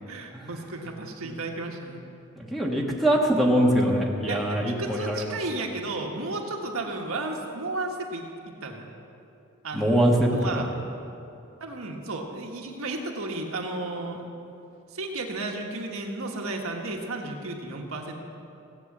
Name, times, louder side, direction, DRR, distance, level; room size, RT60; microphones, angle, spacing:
voice 1, 0.1-2.1 4.3-8.9 9.6-10.1 10.3-10.7 11.6-14.3 14.9-18.1, right 2 dB, 70° right, 1 dB, 1.5 m, -33 dB
voice 2, 2.4-5.3 9.7-10.6, right 1 dB, ahead, -3 dB, 1.4 m, -23 dB
16.5 x 8.4 x 7.3 m, 2.8 s
head